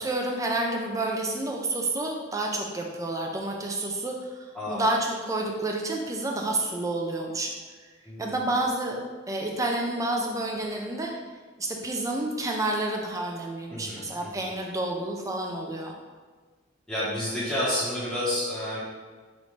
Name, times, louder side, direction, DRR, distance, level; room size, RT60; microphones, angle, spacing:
voice 1, 0.0-7.5 8.2-9.0 9.3-11.1 11.6-15.9, right 2 dB, 15° right, 1 dB, 0.4 m, -29 dB
voice 2, 4.5-4.9 8.0-8.5 13.7-14.5 16.9-18.8, left 1 dB, 5° left, -12 dB, 1.1 m, -30 dB
5.0 x 2.6 x 3.1 m, 1.4 s
head